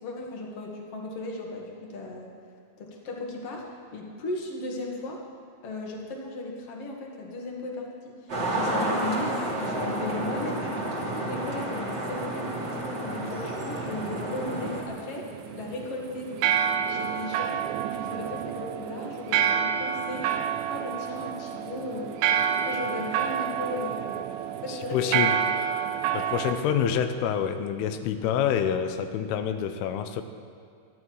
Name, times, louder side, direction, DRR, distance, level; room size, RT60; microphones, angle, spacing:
voice 1, 0.0-2.3 2.8-5.2 5.6-16.3 16.9-17.6 17.9-20.3 20.7-22.2 22.7-24.1 24.6-25.2 26.4-26.6, left 2 dB, 50° left, -1 dB, 1.9 m, -36 dB
sound 1, 8.3-14.8, right 1 dB, 35° right, 2.0 m, -30 dB
sound 2, 8.8-26.5, right 8 dB, 80° right, 3.1 m, -30 dB
voice 2, 24.7-25.4 26.1-30.2, left 8 dB, 85° left, 8 dB, 3.3 m, -27 dB
27.0 x 11.5 x 4.8 m, 2.3 s
omnidirectional pair, 5.7 m